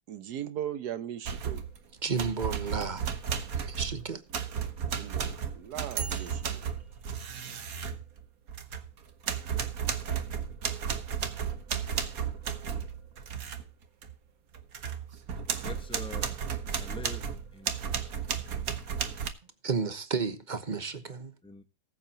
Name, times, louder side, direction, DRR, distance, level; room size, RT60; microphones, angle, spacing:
voice 1, 0.1-1.6 4.8-6.7, right 10 dB, 85° right, 1.4 m, -39 dB
sound 1, 1.2-1.8 2.2-8.9 9.2-13.6 14.0-14.1 14.5-19.3, right 7 dB, 65° right, 1.7 m, -34 dB
voice 2, 2.0-3.1 3.6-4.2 19.6-21.3, right 5 dB, 30° right, 1.1 m, -32 dB
voice 3, 15.6-16.4 16.7-19.2 21.4-21.6, left 2 dB, 5° left, 1.1 m, -47 dB
19.0 x 8.0 x 2.9 m
omnidirectional pair, 1.7 m